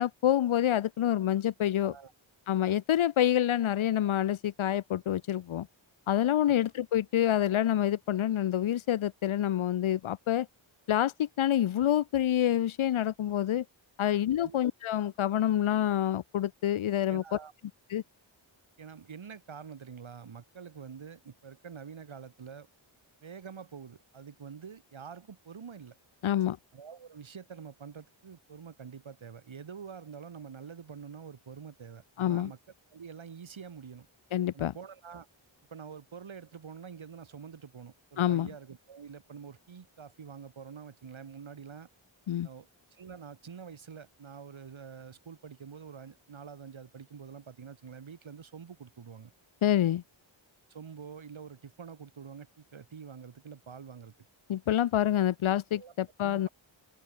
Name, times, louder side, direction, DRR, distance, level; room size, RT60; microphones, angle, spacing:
voice 1, 0.0-1.9 2.5-5.7 6.1-10.5 10.9-13.6 14.0-17.4 17.9-18.0 26.2-26.6 32.2-32.5 34.3-34.7 38.2-38.5 42.3-42.5 49.6-50.0 54.5-56.5, left 11 dB, 85° left, 0.8 m, -27 dB
voice 2, 17.1-17.5 18.8-22.7 23.2-26.0 26.7-32.6 32.9-34.1 34.5-35.3 35.7-41.9 42.4-49.3 50.7-54.1 55.7-55.9 56.2-56.5, right 6 dB, 75° right, 6.1 m, -46 dB
open air
wide cardioid pair, 140°, 47 cm